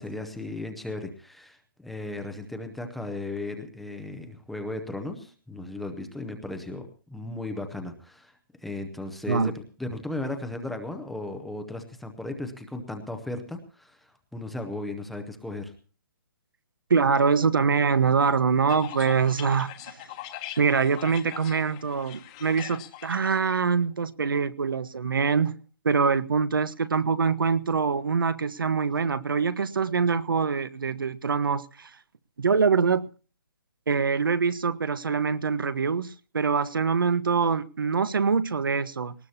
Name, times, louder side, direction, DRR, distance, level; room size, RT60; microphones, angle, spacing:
voice 1, 0.0-8.3 8.6-9.5 9.8-15.7, left 2 dB, ahead, 0.6 m, -36 dB
voice 2, 16.9-20.0 20.6-25.5 25.8-32.0 32.4-33.1 33.9-39.1, right 5 dB, 80° right, 1.2 m, -24 dB
sound 1, 18.7-23.6, left 13 dB, 15° left, 1.2 m, -42 dB
19.0 x 19.0 x 2.8 m
hypercardioid pair, 175°, 11 cm